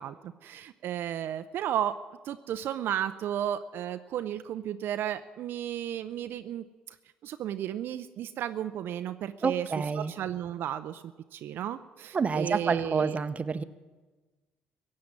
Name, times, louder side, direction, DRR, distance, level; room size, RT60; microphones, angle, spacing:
voice 1, 0.0-2.0 2.2-7.0 7.2-11.0 11.3-13.2, right 10 dB, 70° right, 10 dB, 0.5 m, -33 dB
voice 2, 9.4-10.1 12.1-13.6, right 5 dB, 35° right, 12 dB, 0.8 m, -28 dB
15.5 x 7.6 x 9.7 m, 1.3 s
supercardioid pair, 75°, 4 cm